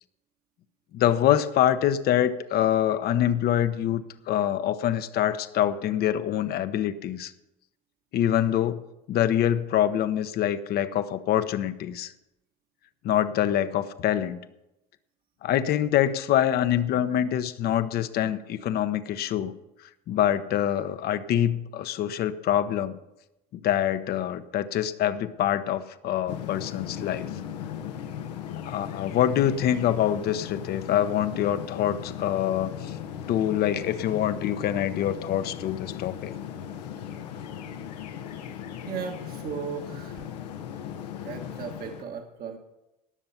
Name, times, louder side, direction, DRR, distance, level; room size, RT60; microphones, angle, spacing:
voice 1, 0.9-7.3 8.1-8.8 9.1-12.1 13.0-14.4 15.4-19.5 20.1-23.0 23.6-27.3 28.6-33.0 33.3-36.3, left 11 dB, 50° left, 11 dB, 0.9 m, -25 dB
sound 1, 26.3-42.0, left 9 dB, 90° left, 1.2 m, -37 dB
voice 2, 38.9-40.3 40.9-42.6, right 7 dB, 50° right, 3 dB, 1.5 m, -37 dB
18.5 x 6.8 x 5.8 m, 0.93 s
supercardioid pair, 90°, 20 cm